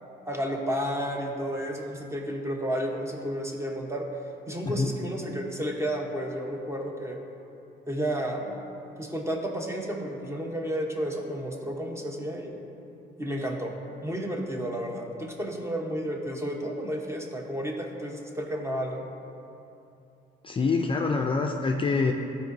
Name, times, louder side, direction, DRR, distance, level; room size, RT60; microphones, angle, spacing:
voice 1, 0.3-4.1 4.5-7.2 7.9-8.6 9.0-12.6 13.2-13.7 14.0-19.0, equal, 15° right, 1 dB, 0.9 m, -32 dB
voice 2, 20.4-22.1, left 4 dB, 25° left, 2 dB, 0.4 m, -25 dB
12.0 x 4.6 x 2.6 m, 2.8 s
cardioid pair, 90°, 20 cm